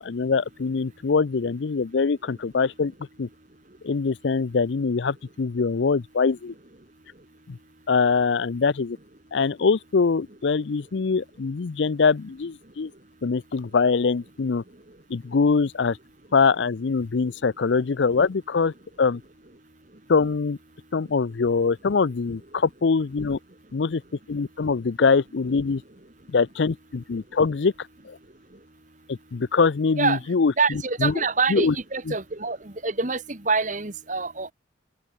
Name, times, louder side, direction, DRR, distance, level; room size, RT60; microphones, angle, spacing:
voice 1, 0.0-2.9 3.2-3.3 3.8-6.5 7.5-7.6 7.9-9.0 9.3-12.9 13.2-14.6 15.1-16.0 16.3-19.2 20.1-20.6 20.9-23.4 23.7-24.0 24.3-25.8 26.3-27.7 28.0-28.2 29.1-31.1 31.5-31.7 32.1-32.2, left 4 dB, 65° left, 0.5 m, -23 dB
voice 2, 30.6-34.5, right 4 dB, 40° right, 1.9 m, -26 dB
open air
head